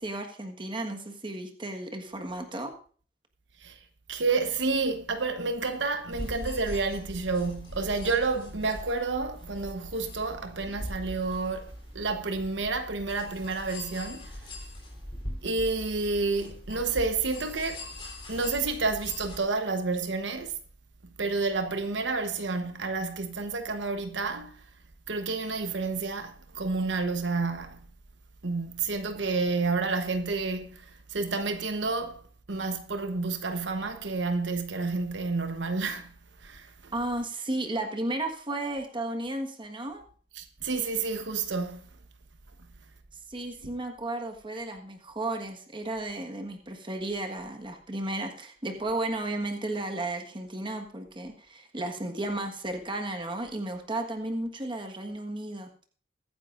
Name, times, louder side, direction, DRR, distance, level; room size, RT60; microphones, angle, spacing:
voice 1, 0.0-2.7 36.9-40.0 43.3-55.7, right 2 dB, 30° right, 1.5 m, -34 dB
voice 2, 4.1-14.3 15.4-17.9 18.3-20.5 21.2-24.6 25.1-27.9 28.4-32.2 32.5-36.1 36.4-36.9 40.3-41.8, right 3 dB, 90° right, 1.0 m, -30 dB
sound 1, 6.1-19.4, left 1 dB, 30° left, 3.6 m, -41 dB
22.0 x 9.6 x 2.6 m
head